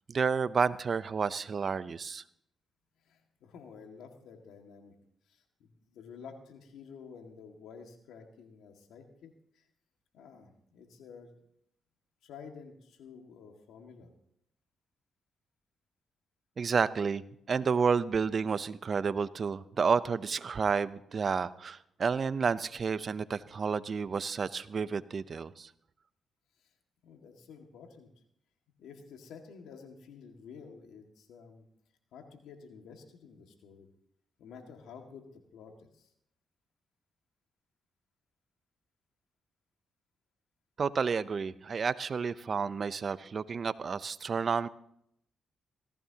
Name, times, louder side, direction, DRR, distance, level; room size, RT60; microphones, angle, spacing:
voice 1, 0.1-2.2 16.6-17.2 17.5-25.7 40.8-44.7, right 5 dB, 50° right, 15 dB, 0.7 m, -30 dB
voice 2, 3.0-4.9 5.3-9.6 10.1-11.3 12.2-14.1 27.0-28.1 28.8-31.6 32.1-33.9 34.4-36.1, left 6 dB, 85° left, 3 dB, 2.0 m, -51 dB
18.0 x 15.5 x 2.9 m, 0.71 s
cardioid pair, 65°, 0 cm